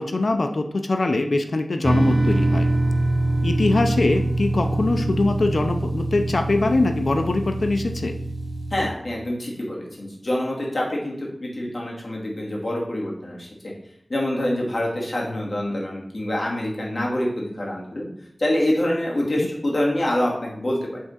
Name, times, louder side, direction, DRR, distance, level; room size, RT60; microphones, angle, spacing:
voice 1, 0.0-2.7 3.4-8.1 19.4-19.5, left 2 dB, 75° left, 6 dB, 0.6 m, -22 dB
sound 1, 1.8-8.9, right 1 dB, 65° right, 1.0 m, -24 dB
voice 2, 8.7-13.7 14.1-18.1 18.4-21.0, left 1 dB, 55° left, -3 dB, 2.3 m, -26 dB
7.5 x 3.7 x 5.6 m, 0.73 s
wide cardioid pair, 55°, 0 cm